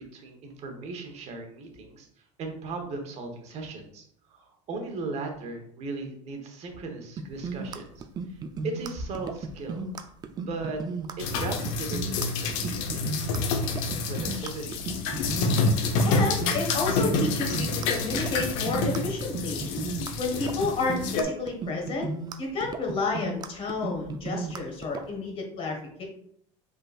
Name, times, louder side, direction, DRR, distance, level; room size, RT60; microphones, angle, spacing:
voice 1, 0.0-2.1 2.4-9.9 10.3-10.8 11.2-13.8 14.1-14.8, right 3 dB, 40° right, 4 dB, 1.1 m, -37 dB
sound 1, 7.2-25.1, right 4 dB, 25° right, 0.4 m, -35 dB
sound 2, 11.2-21.2, left 3 dB, 70° left, 0.8 m, -28 dB
voice 2, 16.0-19.6 20.2-22.1 22.4-26.1, left 3 dB, 35° left, 1 dB, 1.5 m, -31 dB
5.1 x 3.9 x 2.4 m, 0.66 s
supercardioid pair, 125°, 16 cm